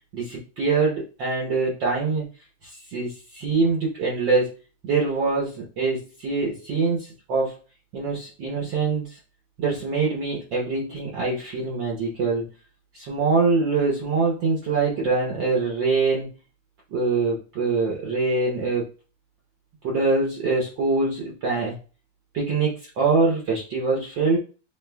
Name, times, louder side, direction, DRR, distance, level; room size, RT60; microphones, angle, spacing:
voice 1, 0.1-2.2 2.9-4.5 4.8-7.6 7.9-9.1 9.6-12.4 12.9-16.3 16.9-18.8 19.8-21.8 22.3-24.4, right 4 dB, 85° right, -3 dB, 1.0 m, -24 dB
6.7 x 2.5 x 2.2 m, 0.35 s
omnidirectional pair, 3.3 m